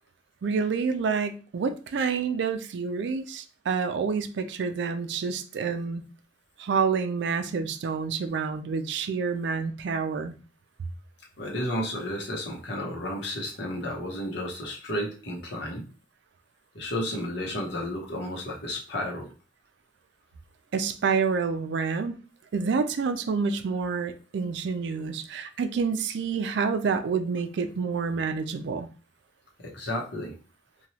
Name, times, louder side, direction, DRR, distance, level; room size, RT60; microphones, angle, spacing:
voice 1, 0.4-6.0 6.6-10.3 20.7-22.2 22.5-28.9, right 5 dB, 65° right, 0.4 m, -28 dB
voice 2, 11.4-15.9 16.7-19.3 29.6-30.3, left 1 dB, 65° left, 0.8 m, -32 dB
2.9 x 2.2 x 2.8 m
head